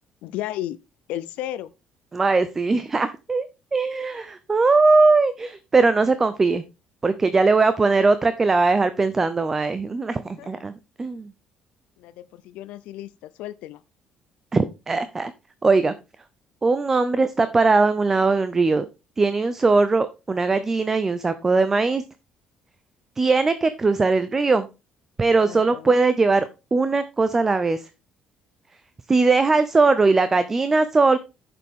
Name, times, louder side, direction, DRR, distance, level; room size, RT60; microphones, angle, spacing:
voice 1, 0.2-0.8 1.1-1.7 10.4-10.6 12.0-13.8 25.4-25.9, left 13 dB, 90° left, 0.5 m, -34 dB
voice 2, 2.1-3.5 3.7-6.6 7.0-11.3 14.5-15.3 15.6-15.9 16.6-18.8 19.2-22.0 23.2-24.7 25.2-27.8 29.1-31.2, right 3 dB, 15° right, 0.5 m, -20 dB
10.5 x 6.8 x 3.6 m
cardioid pair, 170°, 2 cm